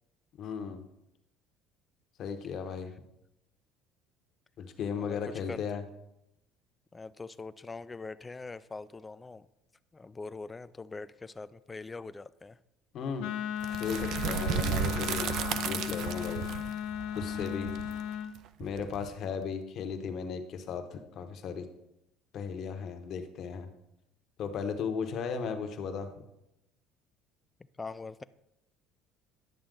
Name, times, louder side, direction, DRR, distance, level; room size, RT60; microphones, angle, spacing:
voice 1, 0.4-0.8 2.2-2.9 4.6-5.8 12.9-13.3 13.8-16.4 17.1-17.7 18.6-21.7 22.3-23.7 24.4-26.1, left 6 dB, 50° left, 7 dB, 1.0 m, -36 dB
voice 2, 5.0-5.6 6.9-9.5 9.9-12.6 27.8-28.2, left 3 dB, 15° left, 15 dB, 0.3 m, -43 dB
Wind instrument woodwind instrument, 13.2-18.3, left 9 dB, 70° left, 0.7 m, -36 dB
sound 1, 13.6-19.4, right 9 dB, 60° right, 0.5 m, -34 dB
10.5 x 6.9 x 3.8 m, 0.86 s
cardioid pair, 135°, 0 cm